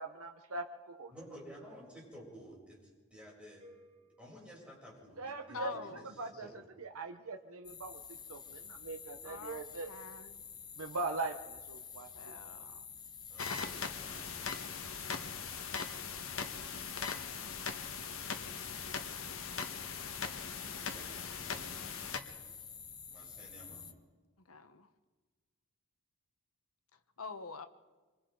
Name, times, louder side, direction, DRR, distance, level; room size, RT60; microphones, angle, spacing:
voice 1, 0.0-1.1 5.2-5.8 6.2-8.0 8.3-9.9 10.8-12.1, right 3 dB, 90° right, 5 dB, 1.0 m, -41 dB
voice 2, 1.1-2.8 3.1-3.6 4.2-6.6 13.3-14.5 20.7-22.4 23.1-23.9, equal, 5° right, -5 dB, 8.0 m, -53 dB
sound 1, 3.6-5.7, equal, 35° right, 3.2 m, -62 dB
voice 3, 5.5-6.1 6.3-6.4 9.2-10.4 12.1-12.9 16.7-17.7 24.4-24.9 26.9-27.7, left 4 dB, 90° left, 9 dB, 1.1 m, -47 dB
sound 2, 7.6-23.9, left 6 dB, 20° left, 0.9 m, -49 dB
sound 3, 13.4-22.2, left 6 dB, 70° left, 1.4 m, -40 dB
26.0 x 25.5 x 3.9 m, 1.3 s
head